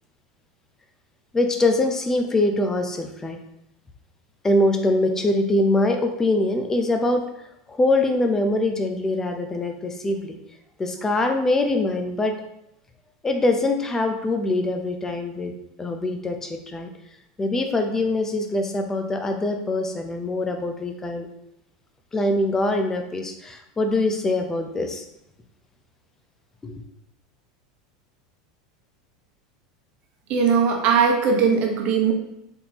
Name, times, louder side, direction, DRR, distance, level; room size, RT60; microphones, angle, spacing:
voice 1, 1.3-3.4 4.4-7.3 7.7-10.4 10.8-12.3 13.2-15.5 15.8-16.9 17.4-21.3 22.1-25.1 26.6-26.8, left 2 dB, 15° left, 5 dB, 0.6 m, -23 dB
voice 2, 30.3-32.1, right 6 dB, 50° right, 1 dB, 1.0 m, -19 dB
4.3 x 3.4 x 2.9 m, 0.81 s
supercardioid pair, 115°, 3 cm